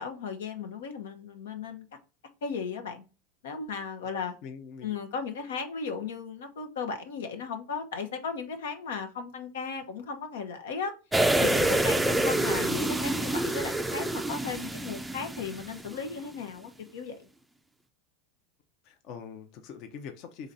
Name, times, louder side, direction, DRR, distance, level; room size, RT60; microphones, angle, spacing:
voice 1, 0.0-1.8 2.4-3.0 3.4-4.3 4.8-10.9 11.4-17.3, left 5 dB, 85° left, 0.8 m, -36 dB
voice 2, 4.1-4.9 18.8-20.5, left 6 dB, 55° left, 0.7 m, -43 dB
sound 1, 11.1-15.9 16.3-16.4, right 1 dB, 5° right, 0.4 m, -27 dB
3.9 x 3.2 x 3.9 m
supercardioid pair, 120°, 0 cm